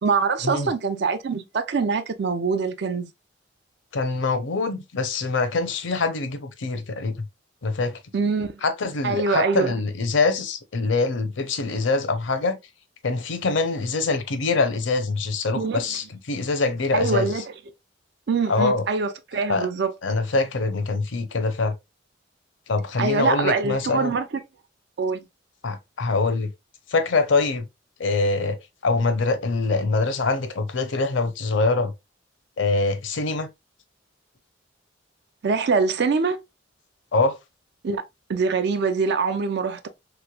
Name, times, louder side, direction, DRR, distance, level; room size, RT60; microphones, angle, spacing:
voice 1, 0.0-3.1 8.1-8.5 9.0-9.7 15.6-15.8 16.9-17.4 18.3-19.9 23.0-24.3 25.0-25.3 35.4-36.4 37.8-38.0 38.3-39.9, right 4 dB, 55° right, 0.4 m, -24 dB
voice 2, 3.9-7.3 7.6-8.0 8.6-12.6 13.0-17.4 18.5-18.8 19.5-19.7 20.0-21.7 22.7-24.2 25.6-26.5 26.9-27.7 28.0-28.6 28.8-31.9 32.6-33.5 37.1-37.4, left 3 dB, 70° left, 0.6 m, -24 dB
3.3 x 3.0 x 2.2 m
head